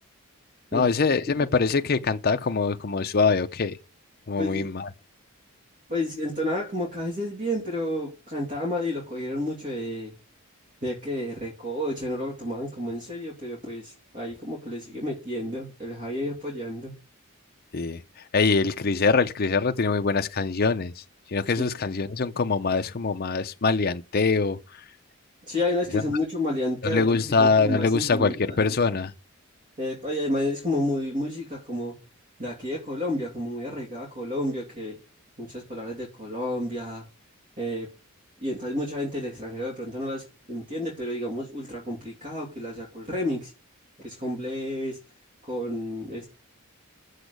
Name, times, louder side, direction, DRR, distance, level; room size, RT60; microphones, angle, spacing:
voice 1, 0.7-3.8 4.3-4.9 17.7-18.0 18.3-21.0 21.3-24.8 25.9-26.0 26.8-29.1, left 4 dB, 45° left, 0.6 m, -23 dB
voice 2, 4.4-4.7 5.9-10.1 10.8-16.9 21.6-21.7 25.5-27.0 27.4-28.6 29.8-32.0 32.4-35.0 35.4-37.0 37.6-37.9 38.4-43.5 44.0-45.0 45.4-46.3, left 1 dB, 35° right, 2.7 m, -30 dB
8.1 x 7.1 x 6.6 m
head